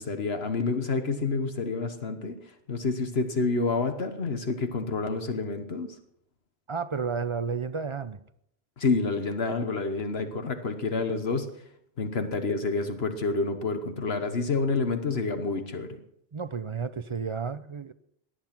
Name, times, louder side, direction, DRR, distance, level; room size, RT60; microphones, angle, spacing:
voice 1, 0.0-2.4 2.7-6.0 8.8-11.5 12.0-16.0, left 4 dB, 70° left, 1.4 m, -28 dB
voice 2, 6.7-8.2 16.3-17.9, right 5 dB, 35° right, 0.6 m, -32 dB
17.5 x 11.0 x 6.0 m
omnidirectional pair, 1.1 m